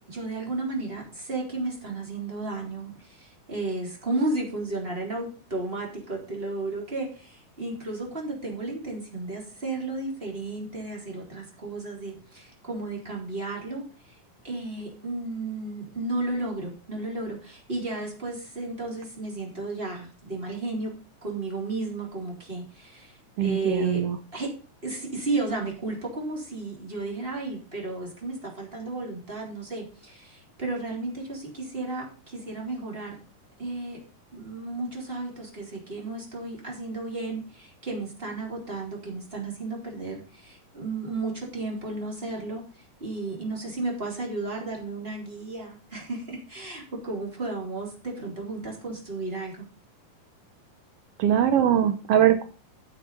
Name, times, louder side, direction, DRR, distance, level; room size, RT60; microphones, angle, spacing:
voice 1, 0.1-13.8 14.4-20.9 21.2-24.0 24.3-24.5 24.8-33.1 33.6-34.0 34.3-49.6, right 2 dB, 15° right, -1 dB, 3.6 m, -33 dB
voice 2, 23.4-24.2 51.2-52.4, right 10 dB, 85° right, 9 dB, 1.3 m, -21 dB
9.9 x 7.0 x 5.5 m, 0.37 s
omnidirectional pair, 3.9 m